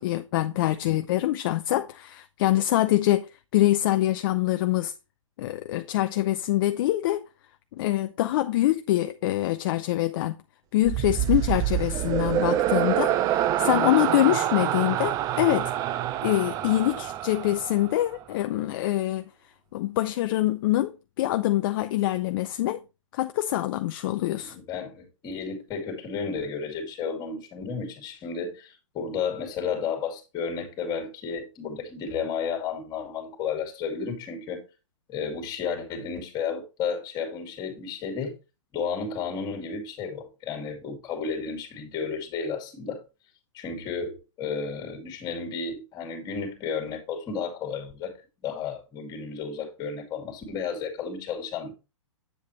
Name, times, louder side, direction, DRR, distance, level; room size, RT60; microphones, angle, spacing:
voice 1, 0.0-4.9 5.4-7.2 7.8-10.4 10.7-15.7 16.2-19.3 19.7-22.8 23.1-24.6, left 15 dB, 45° left, 0.5 m, -25 dB
sound 1, 10.8-18.2, right 12 dB, 20° right, 0.4 m, -26 dB
voice 2, 24.4-34.6 35.1-38.4 38.7-43.0 43.5-48.1 48.4-51.7, left 5 dB, 25° left, 2.5 m, -32 dB
7.8 x 7.3 x 3.0 m
hypercardioid pair, 130°, 17 cm